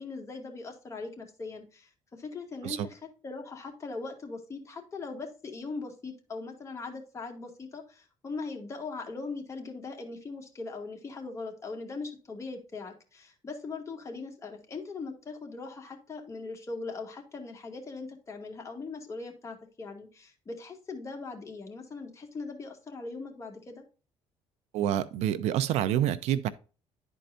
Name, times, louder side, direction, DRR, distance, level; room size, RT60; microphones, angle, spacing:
voice 1, 0.0-23.8, left 3 dB, 25° left, 2.1 m, -40 dB
voice 2, 24.7-26.5, right 11 dB, 85° right, 0.6 m, -27 dB
11.0 x 4.6 x 2.6 m
cardioid pair, 115°, 11 cm